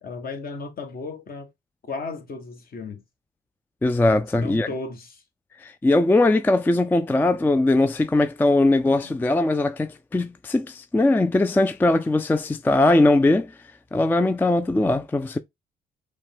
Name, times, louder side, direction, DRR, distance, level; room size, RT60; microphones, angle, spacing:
voice 1, 0.0-1.5 1.8-3.0 4.3-5.1 9.0-9.2, left 3 dB, 50° left, 1.2 m, -34 dB
voice 2, 3.8-4.7 5.6-13.6 13.9-15.4, left 2 dB, 10° left, 0.3 m, -20 dB
5.2 x 2.2 x 3.5 m
cardioid pair, 90°, 20 cm